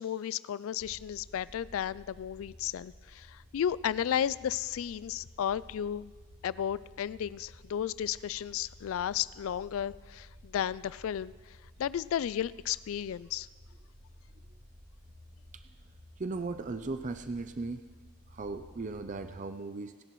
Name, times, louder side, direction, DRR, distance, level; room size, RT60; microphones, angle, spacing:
voice 1, 0.0-3.3 3.5-6.1 6.4-11.3 11.8-13.5, left 9 dB, 70° left, 18 dB, 0.3 m, -33 dB
sound 1, 0.8-19.5, equal, 75° right, 2.4 m, -55 dB
voice 2, 16.2-17.8 18.3-20.0, right 3 dB, 35° right, 8 dB, 0.5 m, -37 dB
28.5 x 10.5 x 3.1 m, 1.4 s
head